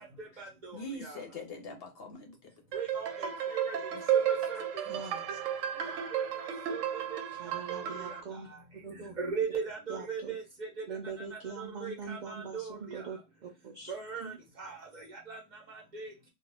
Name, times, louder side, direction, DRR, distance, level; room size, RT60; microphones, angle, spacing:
voice 1, 0.0-1.2 2.7-3.8 4.3-4.6 5.0-5.1 5.8-7.2 7.5-8.4 9.2-10.8 11.3-13.0 13.9-16.1, right 5 dB, 45° right, 0.8 m, -40 dB
voice 2, 0.7-2.5 3.9-4.0 4.9-5.0, left 2 dB, 60° left, 0.8 m, -43 dB
sound 1, 2.7-8.2, right 9 dB, 90° right, 0.9 m, -33 dB
voice 3, 4.9-5.4 7.4-8.5 8.8-9.1 9.9-10.4 10.9-13.9 14.2-14.4, right 5 dB, 65° right, 0.4 m, -42 dB
2.4 x 2.3 x 3.2 m
omnidirectional pair, 1.3 m